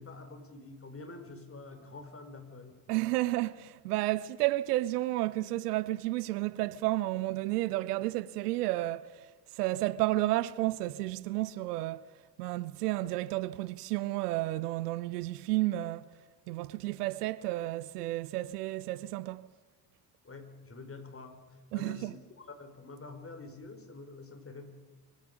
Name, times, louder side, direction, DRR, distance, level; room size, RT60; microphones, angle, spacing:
voice 1, 0.0-2.9 20.2-24.7, left 3 dB, 30° left, 5.1 m, -47 dB
voice 2, 2.9-9.3 9.5-12.1 12.4-16.1 16.5-19.5 21.7-22.1, right 17 dB, 80° right, 0.7 m, -31 dB
27.0 x 23.5 x 5.3 m
hypercardioid pair, 45°, 46 cm